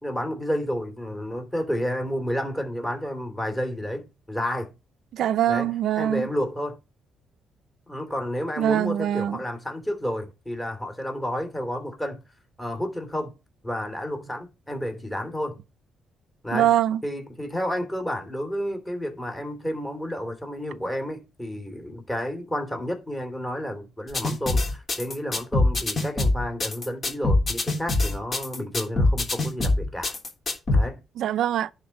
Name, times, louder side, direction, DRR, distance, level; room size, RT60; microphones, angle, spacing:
voice 1, 0.0-4.7 5.5-6.8 7.9-12.2 12.6-13.3 13.6-15.6 16.4-16.7 17.0-30.1 30.7-31.0, equal, 10° left, 3.2 m, -31 dB
voice 2, 5.1-6.3 8.6-9.4 16.5-17.0 31.2-31.7, right 11 dB, 75° right, 0.5 m, -23 dB
sound 1, 24.1-30.8, left 2 dB, 35° left, 3.4 m, -23 dB
10.5 x 4.4 x 7.1 m
cardioid pair, 90°, 0 cm